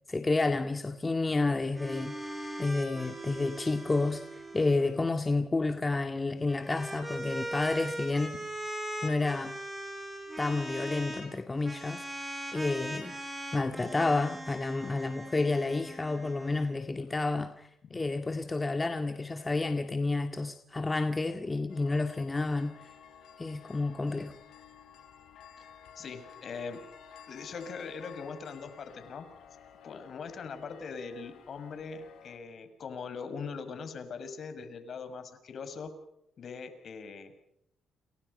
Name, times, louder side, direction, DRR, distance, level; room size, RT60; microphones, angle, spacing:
voice 1, 0.1-2.1 2.6-8.3 9.0-9.5 10.4-12.0 12.5-13.2 13.5-22.9 23.4-24.3, left 3 dB, 20° left, 6 dB, 2.0 m, -30 dB
sound 1, 1.7-5.0 6.3-11.3 11.6-16.7, right 1 dB, 10° right, 7.7 m, -40 dB
voice 2, 17.9-18.4 26.0-26.8 27.3-29.3 29.8-35.9 36.4-37.3, left 5 dB, 55° left, 9 dB, 6.3 m, -41 dB
sound 2, 21.7-32.4, left 7 dB, 75° left, 5.2 m, -53 dB
29.5 x 29.5 x 5.6 m, 0.78 s
cardioid pair, 90°, 0 cm